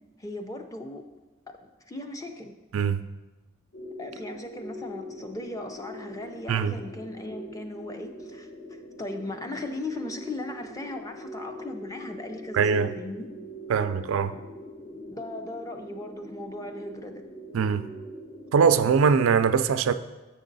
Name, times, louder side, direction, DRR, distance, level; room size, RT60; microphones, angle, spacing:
voice 1, 0.2-1.1 1.5-2.5 4.0-8.5 9.0-13.3 14.9-17.2, left 1 dB, 15° left, 0.5 m, -37 dB
sound 1, 3.7-19.1, equal, 60° left, 1.0 m, -43 dB
voice 2, 12.5-12.9 13.7-14.4 17.5-17.9 18.5-19.9, right 6 dB, 90° right, 0.4 m, -22 dB
6.8 x 6.3 x 3.9 m
head